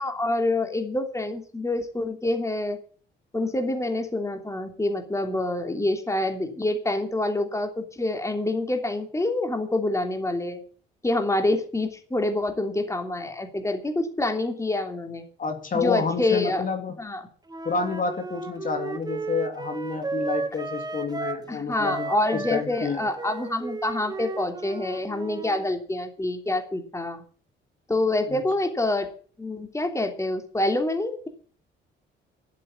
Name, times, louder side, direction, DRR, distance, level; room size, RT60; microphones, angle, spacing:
voice 1, 0.0-2.8 3.3-10.6 11.0-15.2 15.7-16.6 17.0-17.2 21.5-27.2 27.9-29.1 29.4-31.3, left 2 dB, 15° left, 5 dB, 3.1 m, -26 dB
voice 2, 15.4-17.0 17.6-23.0 28.3-28.4, left 5 dB, 45° left, 5 dB, 3.1 m, -29 dB
Wind instrument woodwind instrument, 17.5-21.4 21.7-25.7, right 3 dB, 20° right, 1.6 m, -34 dB
12.0 x 7.5 x 9.8 m, 0.42 s
cardioid pair, 90°, 20 cm